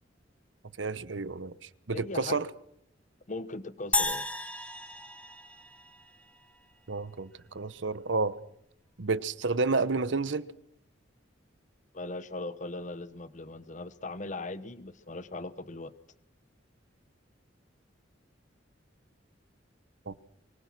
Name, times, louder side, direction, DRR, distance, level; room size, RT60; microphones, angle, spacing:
voice 1, 0.8-2.5 6.9-8.4 9.0-10.5 20.1-20.2, right 3 dB, 70° right, 1.0 m, -30 dB
voice 2, 1.9-2.4 3.3-4.3 11.9-15.9, left 2 dB, 40° left, 1.1 m, -39 dB
sound 1, 3.9-6.4, left 2 dB, 5° left, 1.5 m, -33 dB
24.5 x 21.5 x 6.1 m
head